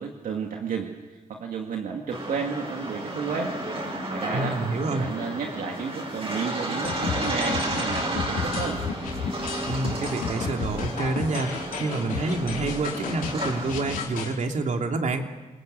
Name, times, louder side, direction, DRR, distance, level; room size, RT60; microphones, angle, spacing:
voice 1, 0.0-3.5 4.1-4.6 4.9-8.8, right 5 dB, 80° right, 1 dB, 2.2 m, -32 dB
sound 1, 2.1-14.0, right 1 dB, 45° right, 7.8 m, -32 dB
voice 2, 4.3-5.1 9.7-15.2, right 3 dB, 60° right, 3 dB, 3.0 m, -28 dB
sound 2, 6.8-14.3, left 6 dB, 90° left, 3.7 m, -33 dB
27.5 x 20.0 x 8.0 m, 1.2 s
cardioid pair, 65°, 14 cm